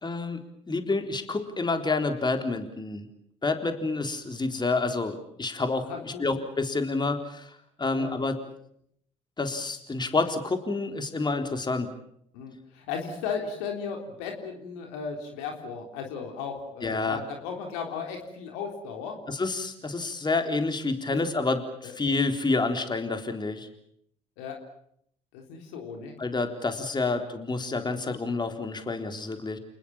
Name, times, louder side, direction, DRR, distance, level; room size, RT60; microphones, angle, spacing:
voice 1, 0.0-3.1 3.4-8.4 9.4-11.9 16.8-17.2 19.3-23.7 26.2-29.6, left 3 dB, 25° left, 6 dB, 3.8 m, -29 dB
voice 2, 5.9-6.3 7.9-8.1 12.3-19.2 21.1-21.2 21.8-21.9 24.4-24.6 25.3-26.2, left 6 dB, 80° left, 3 dB, 3.7 m, -36 dB
29.5 x 20.5 x 7.2 m, 0.69 s
hypercardioid pair, 50°, 16 cm